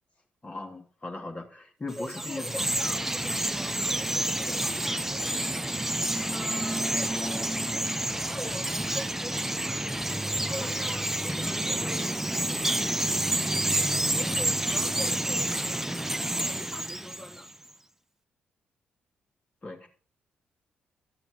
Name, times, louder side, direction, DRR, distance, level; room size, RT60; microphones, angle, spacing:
voice 1, 0.4-2.7 10.6-10.7 19.6-19.9, left 2 dB, 30° left, 2 dB, 3.2 m, -38 dB
voice 2, 1.9-5.6 5.9-7.1 7.5-9.9 10.5-12.9 13.5-16.1 16.4-17.8, equal, 10° left, 1 dB, 1.8 m, -44 dB
Chirp tweet, 1.9-17.5, right 1 dB, 10° right, 0.7 m, -29 dB
12.0 x 6.9 x 5.5 m, 0.43 s
hypercardioid pair, 45°, 4 cm